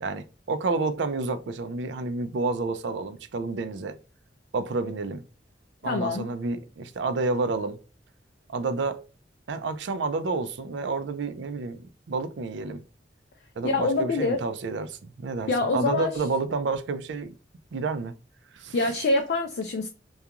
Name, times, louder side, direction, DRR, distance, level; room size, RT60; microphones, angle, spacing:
voice 1, 0.0-4.0 4.5-5.2 5.8-7.8 8.5-9.0 9.5-11.8 12.1-12.8 13.6-17.3 17.7-18.1 18.5-18.8, right 3 dB, 85° right, 0.4 m, -29 dB
voice 2, 5.8-6.3 13.6-14.4 15.5-16.1 18.7-19.9, left 3 dB, 65° left, 0.4 m, -25 dB
2.4 x 2.3 x 2.8 m
head